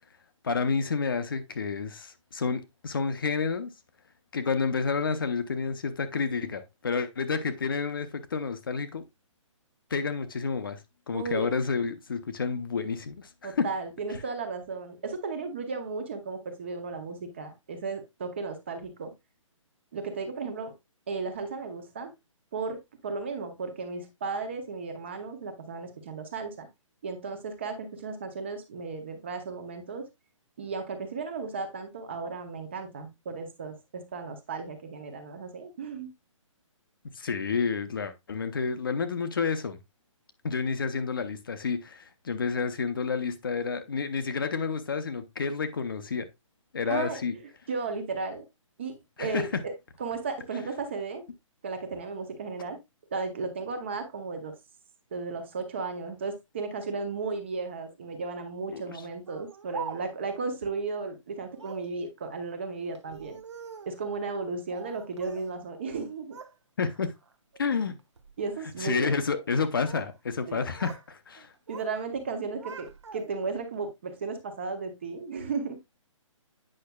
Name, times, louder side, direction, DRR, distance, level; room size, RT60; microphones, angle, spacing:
voice 1, 0.4-3.7 4.3-9.0 9.9-10.8 11.1-13.7 37.1-39.8 40.4-46.3 46.7-47.3 49.2-49.5 58.7-58.8 66.8-67.1 67.6-68.0 68.8-71.5, left 5 dB, 40° left, 0.7 m, -30 dB
voice 2, 11.1-11.5 13.4-19.1 19.9-20.7 21.1-22.1 22.5-26.7 27.0-30.1 30.6-36.1 46.9-47.2 47.7-48.5 48.8-49.7 50.0-51.3 51.6-52.8 53.1-54.6 55.1-63.4 63.9-66.4 68.4-69.4 70.5-70.6 71.7-76.0, right 4 dB, 20° right, 0.7 m, -35 dB
Speech, 59.3-60.4 61.5-62.0 63.0-64.0 64.7-65.5 65.8-66.6 66.9-67.3 68.0-68.3 69.4-70.2 70.4-71.1 71.4-71.9 72.3-73.5, right 6 dB, 55° right, 0.9 m, -44 dB
8.6 x 5.7 x 2.2 m
hypercardioid pair, 175°, 17 cm